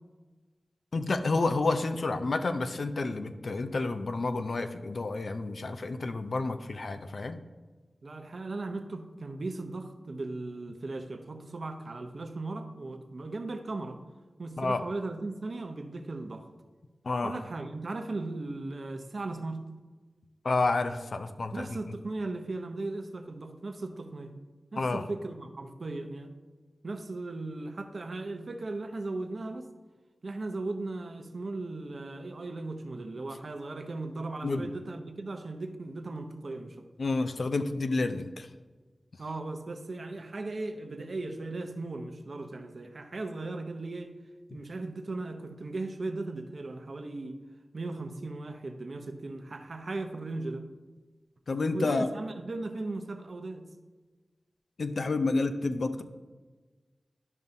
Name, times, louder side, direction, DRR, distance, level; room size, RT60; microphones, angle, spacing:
voice 1, 0.9-7.4 14.6-14.8 17.1-17.4 20.4-21.7 24.8-25.0 34.4-34.7 37.0-38.5 51.5-52.1 54.8-56.0, left 3 dB, 70° left, 8 dB, 0.5 m, -29 dB
voice 2, 8.0-14.0 14.4-16.5 17.2-19.6 21.5-24.3 24.7-26.3 26.8-29.7 30.2-36.9 39.2-44.1 44.5-47.4 47.7-50.7 51.7-53.7, right 2 dB, 65° right, 7 dB, 0.7 m, -37 dB
12.0 x 5.4 x 2.7 m, 1.3 s
cardioid pair, 50°, 0 cm